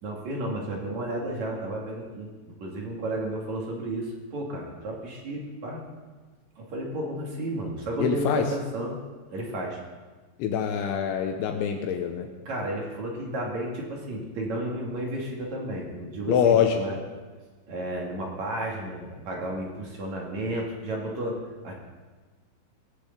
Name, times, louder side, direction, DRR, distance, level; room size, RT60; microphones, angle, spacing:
voice 1, 0.0-5.8 6.6-9.0 9.3-9.8 12.5-17.0 17.7-21.7, right 1 dB, 45° right, -2 dB, 3.0 m, -32 dB
voice 2, 8.0-8.5 10.4-12.3 16.3-16.8, left 8 dB, 75° left, 4 dB, 3.1 m, -24 dB
19.0 x 6.8 x 8.2 m, 1.3 s
omnidirectional pair, 5.6 m